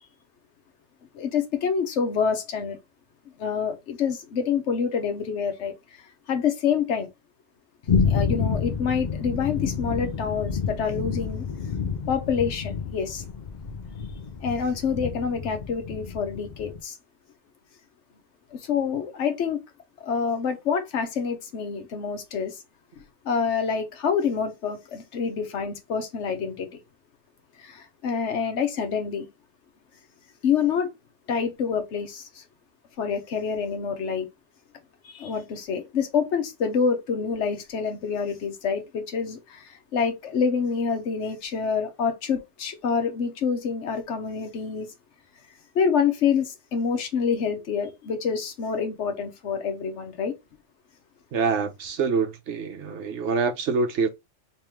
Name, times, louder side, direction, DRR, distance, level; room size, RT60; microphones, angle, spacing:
voice 1, 1.1-2.8 3.4-5.7 6.3-7.1 8.0-11.4 12.1-13.2 14.4-16.9 18.5-19.6 20.0-22.6 23.2-26.7 27.6-29.3 30.4-30.9 31.3-32.4 33.0-34.3 35.0-44.9 45.7-50.3, left 6 dB, 80° left, 1.2 m, -27 dB
sound 1, 7.9-16.8, left 6 dB, 50° left, 0.6 m, -29 dB
voice 2, 51.3-54.1, right 5 dB, 75° right, 1.1 m, -25 dB
3.2 x 3.1 x 3.4 m
omnidirectional pair, 1.2 m